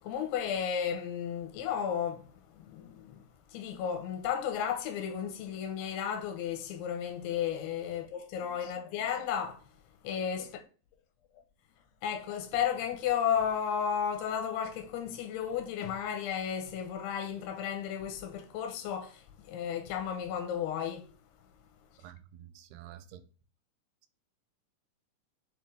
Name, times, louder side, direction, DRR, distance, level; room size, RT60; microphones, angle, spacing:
voice 1, 0.0-9.6 10.0-10.6 12.0-21.1, left 8 dB, 90° left, 2.9 m, -33 dB
voice 2, 22.0-23.2, right 11 dB, 85° right, 2.6 m, -49 dB
7.3 x 4.6 x 3.3 m
omnidirectional pair, 4.7 m